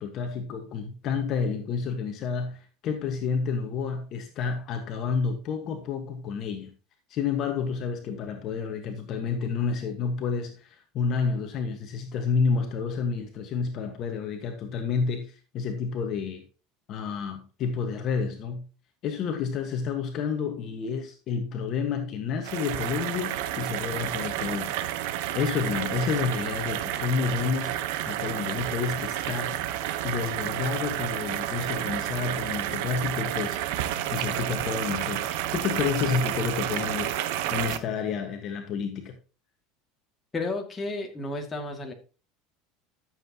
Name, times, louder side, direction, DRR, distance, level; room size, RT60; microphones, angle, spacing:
voice 1, 0.0-6.7 7.1-16.4 16.9-18.6 19.0-24.7 25.3-27.7 28.0-29.6 30.0-33.6 34.1-39.1, left 5 dB, 45° left, 1.5 m, -30 dB
sound 1, 22.4-37.8, right 12 dB, 70° right, 1.0 m, -30 dB
voice 2, 40.3-41.9, left 2 dB, 15° left, 2.2 m, -32 dB
13.5 x 7.6 x 2.9 m
supercardioid pair, 140°, 0 cm